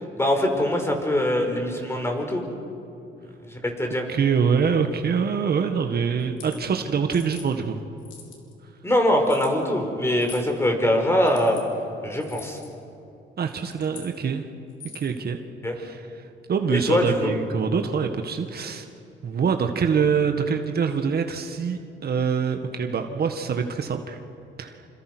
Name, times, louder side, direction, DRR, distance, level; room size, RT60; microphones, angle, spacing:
voice 1, 0.2-2.4 3.5-4.0 8.8-11.6 12.0-12.6 15.6-15.8 16.7-17.3, left 1 dB, 10° left, 3 dB, 5.4 m, -23 dB
voice 2, 4.1-7.8 13.4-14.4 14.9-15.4 15.7-18.9 19.2-24.2 24.6-24.8, right 6 dB, 50° right, 6 dB, 1.7 m, -25 dB
sound 1, 6.2-6.6 7.1-7.5 8.0-8.5 9.2-9.5 10.2-10.5 11.2-11.6 12.2-12.7 13.4-14.1 14.7-15.2, left 6 dB, 70° left, 5.1 m, -44 dB
27.5 x 27.0 x 6.3 m, 2.7 s
cardioid pair, 90°, 20 cm